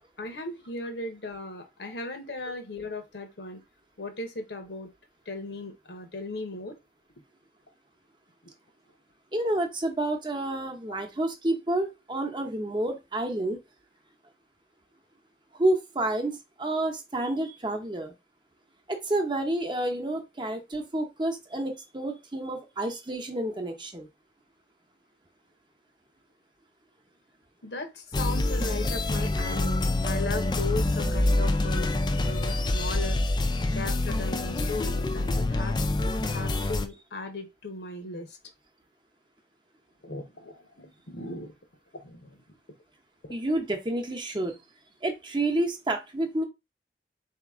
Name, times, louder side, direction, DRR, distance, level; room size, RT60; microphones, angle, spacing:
voice 1, 0.2-3.6 4.0-4.9 5.3-6.8 8.4-8.5 27.6-31.9 32.2-33.2 33.7-35.8 36.2-38.4 40.0-41.5 41.9-42.4 43.2-43.3, left 2 dB, 80° left, 7 dB, 0.9 m, -37 dB
voice 2, 9.3-13.6 15.5-18.1 18.9-24.1 43.3-44.6 45.0-46.4, right 1 dB, 25° right, 4 dB, 0.7 m, -29 dB
sound 1, 28.1-36.9, left 2 dB, 25° left, 0.4 m, -26 dB
4.1 x 2.9 x 3.5 m, 0.24 s
head